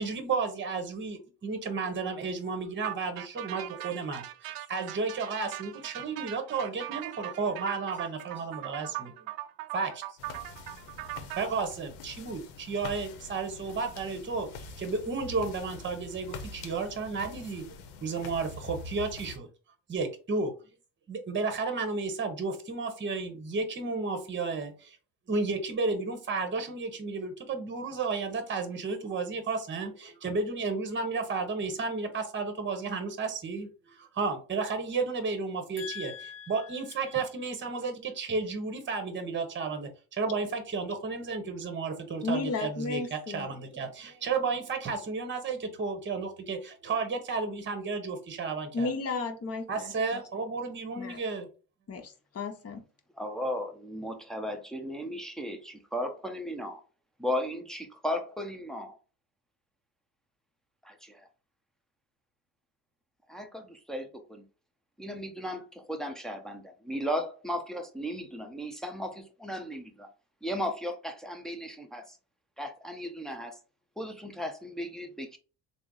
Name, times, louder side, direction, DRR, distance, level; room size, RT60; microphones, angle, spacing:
voice 1, 0.0-9.1 9.7-10.0 11.3-19.5 19.9-20.5 21.1-25.0 25.3-48.9 49.7-51.5, right 4 dB, 25° right, 0.9 m, -33 dB
sound 1, 2.8-11.4, right 15 dB, 55° right, 0.5 m, -40 dB
sound 2, 10.2-19.4, left 3 dB, 70° left, 0.7 m, -45 dB
voice 2, 35.8-36.5 42.2-43.5 48.7-50.2 51.0-51.2 51.9-52.8, left 3 dB, 35° left, 0.9 m, -34 dB
voice 3, 53.2-56.8 57.2-59.0 60.8-61.3 63.3-64.4 65.0-70.1 70.4-72.2 72.6-73.6 74.0-75.4, equal, ahead, 0.6 m, -36 dB
3.4 x 2.1 x 3.8 m
supercardioid pair, 80°, 44 cm